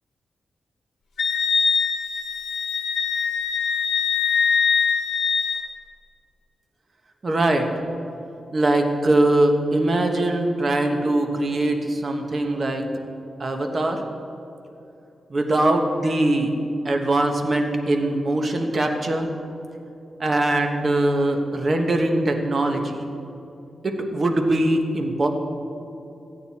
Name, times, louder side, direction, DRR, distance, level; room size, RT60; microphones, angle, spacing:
Wind instrument woodwind instrument, 1.2-5.7, left 6 dB, 75° left, 1.0 m, -23 dB
voice 1, 7.2-7.7 8.5-12.8 13.4-14.0 15.3-16.5 16.8-19.3 20.2-23.0 23.8-25.3, right 1 dB, 45° right, 4 dB, 1.2 m, -22 dB
14.5 x 8.9 x 4.3 m, 2.8 s
cardioid pair, 85°, 0 cm